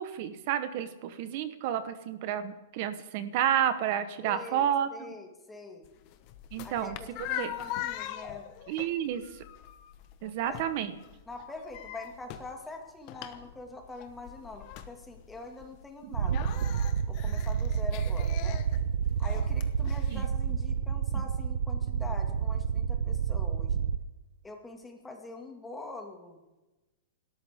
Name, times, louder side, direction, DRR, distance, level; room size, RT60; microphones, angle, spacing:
voice 1, 0.0-4.9 6.5-7.0 7.4-7.5 8.7-9.2 10.2-10.9 16.0-16.1 20.1-20.2, right 10 dB, 40° right, 11 dB, 1.1 m, -30 dB
voice 2, 4.2-5.9 6.6-8.5 10.5-10.6 11.3-16.5 17.1-18.6 19.2-23.8 24.4-26.4, left 2 dB, 5° left, 2 dB, 2.0 m, -44 dB
sound 1, 5.8-20.8, left 12 dB, 35° left, 1.1 m, -42 dB
sound 2, 16.1-24.0, right 7 dB, 70° right, 0.8 m, -29 dB
29.0 x 13.0 x 3.6 m, 1.1 s
supercardioid pair, 165°, 0 cm